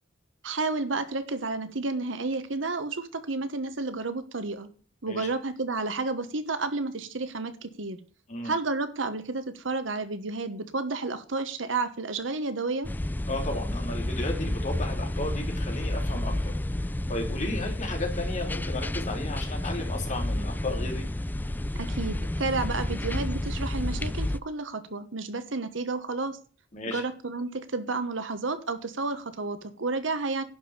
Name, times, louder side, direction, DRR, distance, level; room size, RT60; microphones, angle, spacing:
voice 1, 0.4-4.7 5.0-8.0 8.4-12.9 21.8-26.4 26.9-30.4, right 3 dB, 80° right, 11 dB, 1.3 m, -31 dB
sound 1, 12.8-24.4, left 1 dB, 10° left, 0.4 m, -30 dB
voice 2, 13.3-16.5 17.1-21.1 26.7-27.0, left 2 dB, 40° left, 1 dB, 3.8 m, -34 dB
11.0 x 5.3 x 7.3 m, 0.41 s
head